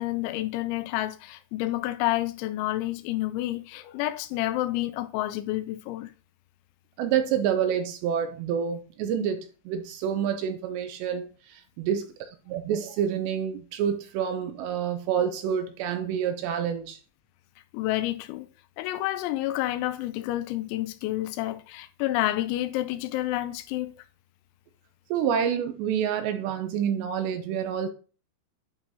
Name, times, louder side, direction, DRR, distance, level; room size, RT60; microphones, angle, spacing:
voice 1, 0.0-6.1 17.7-18.5 18.8-24.0, left 16 dB, 85° left, 2.8 m, -29 dB
voice 2, 7.0-12.1 12.5-17.0 25.1-27.9, right 8 dB, 80° right, 2.7 m, -28 dB
11.0 x 3.8 x 2.7 m
omnidirectional pair, 5.4 m